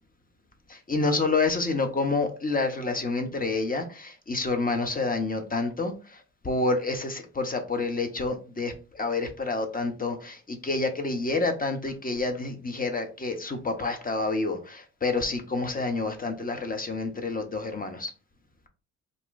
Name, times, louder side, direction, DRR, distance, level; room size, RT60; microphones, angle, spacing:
voice 1, 0.7-18.1, left 3 dB, 25° left, 0.6 m, -28 dB
2.5 x 2.2 x 3.7 m
hypercardioid pair, 50°, 38 cm